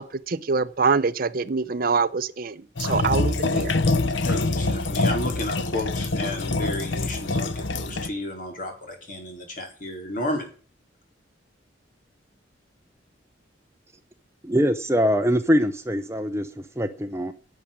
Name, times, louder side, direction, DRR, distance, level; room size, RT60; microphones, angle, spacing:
voice 1, 0.0-3.7, right 4 dB, 50° right, 0.6 m, -25 dB
sound 1, 2.8-8.1, left 2 dB, 75° left, 0.9 m, -25 dB
voice 2, 4.2-10.5, left 1 dB, 45° left, 4.5 m, -32 dB
voice 3, 14.4-17.3, equal, 15° right, 0.8 m, -23 dB
11.0 x 8.3 x 8.8 m
head